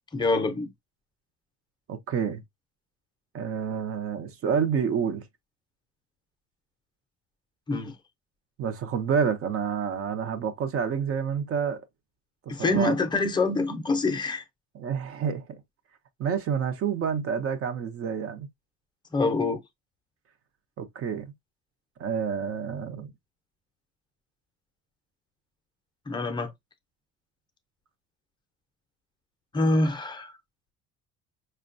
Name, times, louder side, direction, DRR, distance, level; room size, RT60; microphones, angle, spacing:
voice 1, 0.1-0.7 7.7-7.9 12.5-14.4 19.1-19.6 26.1-26.5 29.5-30.3, left 2 dB, 15° left, 0.5 m, -25 dB
voice 2, 1.9-2.4 3.3-5.3 8.6-11.8 12.5-12.9 14.7-15.6 16.2-18.5 20.8-21.3 22.0-23.1, right 7 dB, 50° right, 0.6 m, -28 dB
5.1 x 2.2 x 2.4 m
cardioid pair, 140°, 30 cm